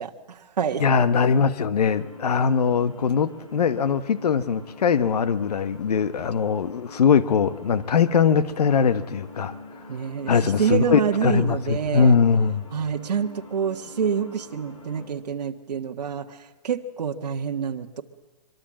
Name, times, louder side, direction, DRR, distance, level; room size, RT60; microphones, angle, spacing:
voice 1, 0.0-0.8 9.9-12.2 12.7-18.0, right 7 dB, 75° right, 1.6 m, -27 dB
voice 2, 0.8-9.5 10.3-12.7, left 6 dB, 70° left, 1.3 m, -21 dB
sound 1, 1.8-15.1, left 2 dB, 50° left, 7.1 m, -45 dB
24.5 x 23.0 x 7.6 m
hypercardioid pair, 175°, 21 cm